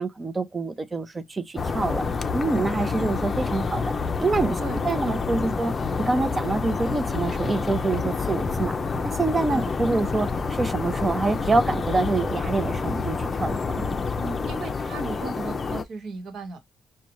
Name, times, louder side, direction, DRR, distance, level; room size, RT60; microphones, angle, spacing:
voice 1, 0.0-2.0 2.3-3.9 4.2-4.6 4.8-8.8 9.0-14.0, right 3 dB, 25° right, 0.6 m, -26 dB
sound 1, 1.6-15.8, left 4 dB, 35° left, 0.5 m, -28 dB
voice 2, 4.6-5.6 9.5-9.7 14.2-16.6, right 3 dB, 70° right, 1.2 m, -36 dB
5.0 x 2.2 x 2.9 m
cardioid pair, 90°, 0 cm